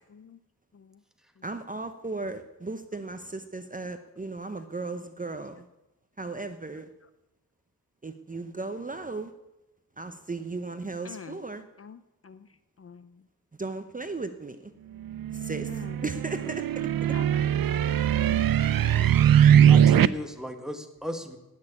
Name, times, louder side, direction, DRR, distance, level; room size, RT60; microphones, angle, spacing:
voice 1, 1.4-5.6 6.2-6.9 8.0-9.3 10.0-11.6 13.6-14.7 15.3-16.6, right 3 dB, 25° right, 8 dB, 0.8 m, -36 dB
voice 2, 11.0-11.4 11.8-12.5 12.8-13.2 15.7-16.0 16.4-16.5 17.1-18.1 18.6-19.1, left 6 dB, 40° left, 13 dB, 0.5 m, -46 dB
sound 1, 15.1-20.1, right 9 dB, 75° right, 0.5 m, -21 dB
voice 3, 19.7-21.4, left 1 dB, ahead, 5 dB, 1.6 m, -36 dB
17.0 x 6.4 x 9.9 m, 0.98 s
wide cardioid pair, 115°, 35 cm